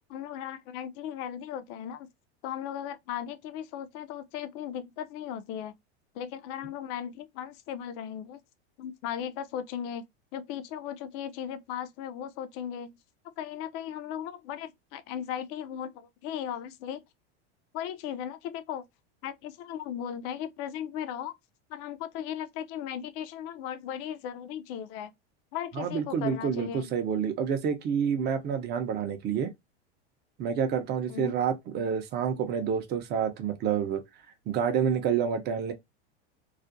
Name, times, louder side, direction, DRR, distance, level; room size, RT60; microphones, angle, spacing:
voice 1, 0.1-2.1 2.4-5.7 6.1-8.4 8.8-10.0 10.3-13.0 13.4-17.0 17.7-18.8 19.2-21.3 21.7-25.1 25.5-27.0 31.1-31.4, left 9 dB, 45° left, 0.5 m, -37 dB
voice 2, 25.8-29.5 30.4-34.0 34.5-35.7, right 7 dB, 30° right, 0.5 m, -28 dB
2.4 x 2.1 x 2.5 m
supercardioid pair, 120°, 33 cm